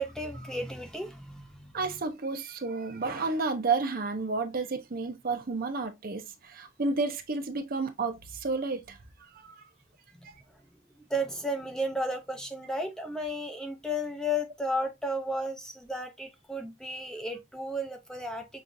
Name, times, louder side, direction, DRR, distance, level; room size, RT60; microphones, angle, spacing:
voice 1, 0.0-1.7 11.1-18.5, equal, 5° left, 0.4 m, -33 dB
voice 2, 1.7-9.0 9.3-9.5 10.2-10.3, right 3 dB, 45° right, 0.6 m, -31 dB
6.0 x 2.4 x 2.5 m
head